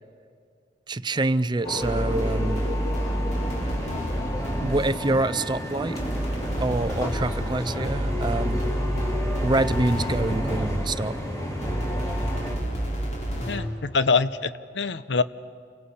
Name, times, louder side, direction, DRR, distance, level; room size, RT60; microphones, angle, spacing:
voice 1, 0.9-2.7 4.6-6.0 6.6-8.7 9.4-11.2, right 2 dB, 25° right, 15 dB, 0.5 m, -26 dB
sound 1, 1.6-12.6, left 1 dB, 20° left, 3.1 m, -31 dB
sound 2, 1.8-5.1 6.0-11.1 11.6-13.8, equal, 40° left, 3.2 m, -29 dB
voice 2, 13.5-15.2, left 4 dB, 80° left, 14 dB, 0.8 m, -24 dB
29.0 x 24.0 x 5.6 m, 2.2 s
head